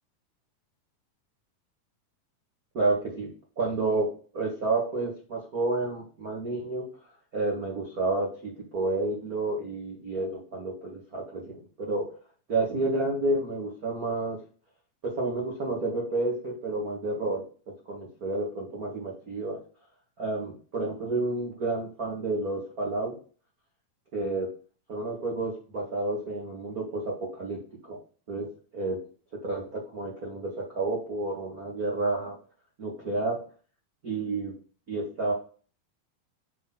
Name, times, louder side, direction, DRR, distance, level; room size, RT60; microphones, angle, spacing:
voice 1, 2.7-3.3 3.6-6.8 7.3-11.4 11.8-12.1 12.5-14.4 15.0-19.6 20.2-23.2 24.1-24.5 24.9-27.6 27.9-28.0 28.3-29.0 29.3-32.4 32.8-33.4 34.0-34.5 34.9-35.3, right 2 dB, 75° right, -2 dB, 0.8 m, -30 dB
5.9 x 3.8 x 5.7 m, 0.39 s
omnidirectional pair, 4.2 m